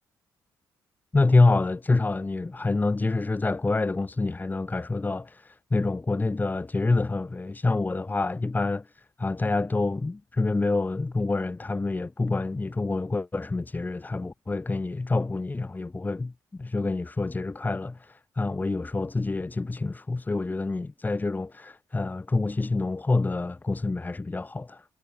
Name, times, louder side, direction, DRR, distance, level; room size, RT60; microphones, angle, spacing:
voice 1, 1.1-8.9 9.2-24.8, left 3 dB, 20° left, 3.0 m, -27 dB
cardioid pair, 80°, 8 cm